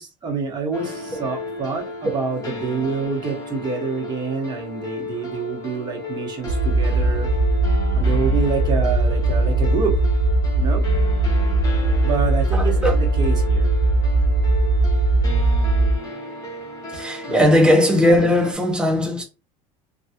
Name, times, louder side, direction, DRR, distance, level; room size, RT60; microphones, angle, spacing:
voice 1, 0.0-7.3 7.9-10.0 10.5-10.8 12.0-13.7 17.3-17.5, right 5 dB, 25° right, 1.1 m, -27 dB
sound 1, 0.7-18.5, left 2 dB, 20° left, 1.0 m, -34 dB
sound 2, 6.5-16.0, right 2 dB, 75° right, 0.9 m, -19 dB
voice 2, 12.5-12.9 16.9-19.2, left 1 dB, 5° right, 0.8 m, -18 dB
3.3 x 2.3 x 2.8 m
cardioid pair, 155°, 15 cm